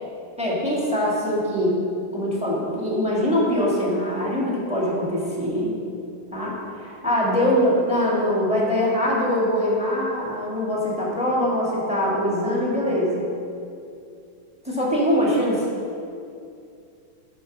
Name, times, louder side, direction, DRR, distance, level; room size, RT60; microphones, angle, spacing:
voice 1, 0.4-1.8 2.1-5.7 6.3-13.3 14.6-15.7, equal, 5° right, -5 dB, 1.7 m, -23 dB
8.2 x 5.4 x 6.0 m, 2.4 s
omnidirectional pair, 2.3 m